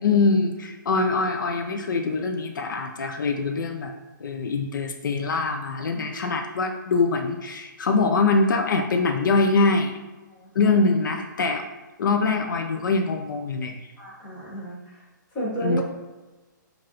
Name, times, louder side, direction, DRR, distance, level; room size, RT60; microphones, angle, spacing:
voice 1, 0.0-3.9 4.2-9.9 10.6-11.6 12.0-13.7 15.6-15.8, left 3 dB, 70° left, 4 dB, 0.5 m, -23 dB
voice 2, 10.3-10.8 14.0-15.0 15.3-15.8, right 1 dB, 15° left, -7 dB, 1.0 m, -33 dB
4.8 x 2.6 x 2.9 m, 1.2 s
hypercardioid pair, 175°, 11 cm